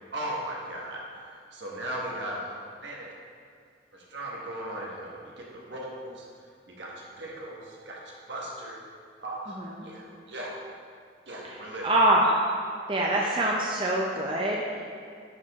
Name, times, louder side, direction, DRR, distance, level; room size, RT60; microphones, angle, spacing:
voice 1, 0.1-3.1 3.9-8.0 8.3-8.8 9.2-10.6 11.3-11.9, right 1 dB, 65° right, -3 dB, 1.5 m, -38 dB
voice 2, 9.6-9.9 11.4-11.6 11.8-12.6 12.9-14.8, right 1 dB, 25° right, -2 dB, 0.6 m, -25 dB
11.0 x 5.1 x 3.6 m, 2.2 s
head